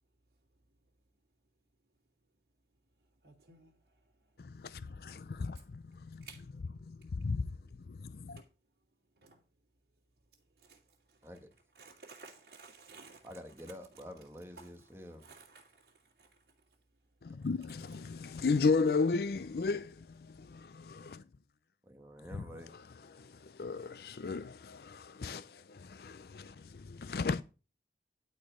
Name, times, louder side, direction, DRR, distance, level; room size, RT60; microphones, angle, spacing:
voice 1, 3.2-3.7 6.2-6.4 8.4-8.5 9.2-9.4 10.6-10.8 11.1-11.2 11.8-13.3 14.6-14.7 15.2-15.9 16.2-16.3 17.9-18.0, right 4 dB, 65° right, 2.5 m, -54 dB
voice 2, 4.4-6.3 6.9-7.5 7.9-8.4 17.2-21.2 23.1-27.4, left 4 dB, 60° left, 0.5 m, -35 dB
voice 3, 13.2-15.3 21.8-22.8, equal, 15° right, 1.5 m, -48 dB
11.5 x 4.5 x 6.6 m
head